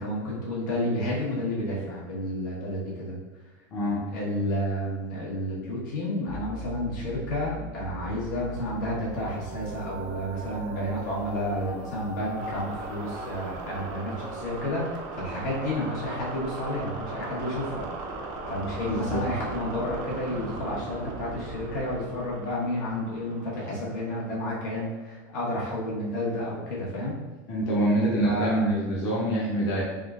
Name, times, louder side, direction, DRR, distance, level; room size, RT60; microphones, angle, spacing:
voice 1, 0.0-3.2 4.1-17.8 18.5-27.2 28.3-28.7, left 1 dB, 75° left, -5 dB, 1.2 m, -31 dB
sound 1, 6.3-24.7, right 3 dB, 50° right, 0.4 m, -38 dB
voice 2, 18.8-19.2 27.5-29.8, right 1 dB, 40° left, -6 dB, 0.7 m, -25 dB
3.6 x 2.4 x 2.4 m, 1.2 s
supercardioid pair, 155°, 10 cm